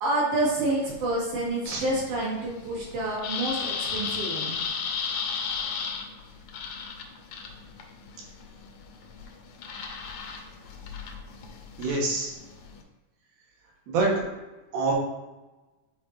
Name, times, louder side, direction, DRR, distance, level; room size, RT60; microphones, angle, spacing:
voice 1, 0.0-4.5, right 2 dB, 60° right, -6 dB, 3.0 m, -28 dB
sound 1, 0.8-12.8, left 6 dB, 75° left, 1.8 m, -35 dB
voice 2, 11.8-12.3 13.9-14.1 14.7-14.9, right 3 dB, 85° right, -2 dB, 3.1 m, -25 dB
9.7 x 4.4 x 2.6 m, 1.1 s
omnidirectional pair, 4.1 m